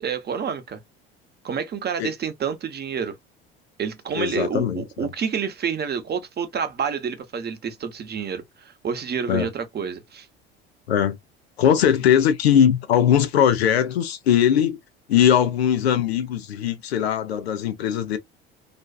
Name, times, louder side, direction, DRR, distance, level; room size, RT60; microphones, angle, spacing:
voice 1, 0.0-0.8 1.4-3.2 3.8-10.3, right 7 dB, 30° right, 0.8 m, -28 dB
voice 2, 4.1-5.1 9.3-9.5 10.9-11.2 11.6-14.8 15.1-18.2, left 9 dB, 85° left, 0.5 m, -20 dB
2.5 x 2.3 x 2.3 m
hypercardioid pair, 70°, 31 cm